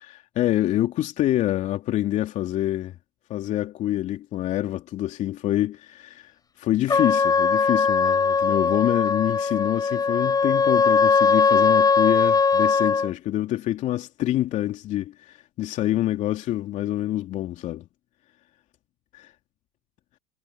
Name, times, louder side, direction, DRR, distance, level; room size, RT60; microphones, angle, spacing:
voice 1, 0.0-3.0 3.3-17.9 19.1-19.3, left 14 dB, 55° left, 2.9 m, -26 dB
Trumpet, 6.9-13.1, left 5 dB, 25° left, 5.9 m, -20 dB
hypercardioid pair, 75°, 15 cm